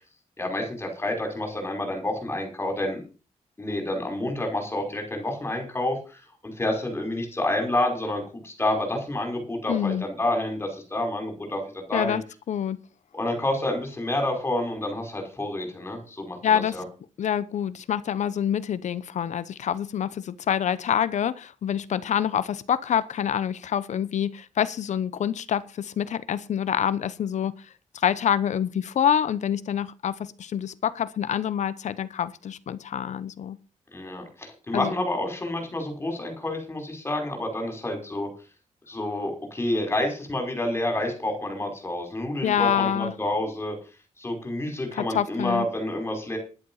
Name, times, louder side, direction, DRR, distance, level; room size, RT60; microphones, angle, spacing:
voice 1, 0.4-3.0 3.6-12.2 13.1-16.8 33.9-38.3 38.9-43.8 44.2-46.4, left 1 dB, 20° left, 3 dB, 5.5 m, -29 dB
voice 2, 9.7-10.0 11.9-12.2 12.5-12.8 16.4-16.8 17.2-27.5 27.9-33.6 34.7-34.9 42.4-43.1 45.0-45.7, left 9 dB, 70° left, 15 dB, 0.8 m, -26 dB
11.5 x 10.5 x 5.7 m, 0.35 s
wide cardioid pair, 135°, 13 cm